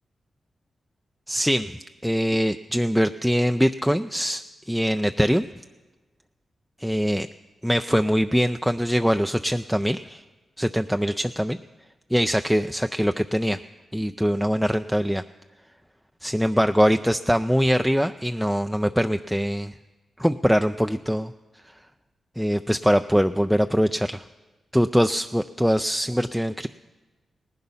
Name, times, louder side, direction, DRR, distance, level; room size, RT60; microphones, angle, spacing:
voice 1, 1.3-5.5 6.8-7.3 7.6-10.2 10.6-11.6 12.1-13.6 13.9-15.2 16.2-19.7 20.2-21.3 21.6-21.7 22.4-24.2 24.7-26.7, equal, ahead, 7 dB, 0.4 m, -23 dB
18.5 x 11.0 x 5.6 m, 1.2 s
cardioid pair, 70°, 0 cm